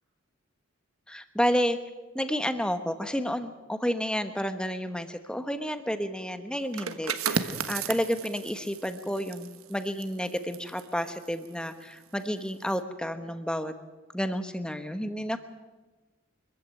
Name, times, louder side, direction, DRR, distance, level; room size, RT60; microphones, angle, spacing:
voice 1, 1.1-1.8 2.1-13.7 14.1-15.4, equal, 5° left, 9 dB, 1.1 m, -30 dB
sound 1, 6.6-12.1 12.5-12.8, right 6 dB, 80° right, 1.4 m, -35 dB
24.5 x 15.0 x 9.2 m, 1.2 s
head